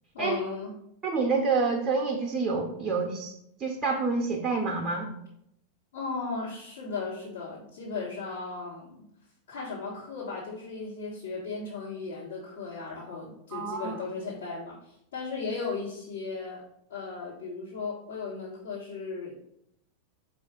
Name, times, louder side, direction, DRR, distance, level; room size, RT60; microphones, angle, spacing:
voice 1, 0.1-0.7 5.9-9.0 9.5-16.6 16.9-19.5, left 4 dB, 65° left, -8 dB, 1.2 m, -36 dB
voice 2, 1.0-3.3 3.6-5.1 13.5-14.0, right 4 dB, 25° right, -1 dB, 0.6 m, -28 dB
4.7 x 2.4 x 4.6 m, 0.77 s
figure-of-eight pair, 90°, 0 cm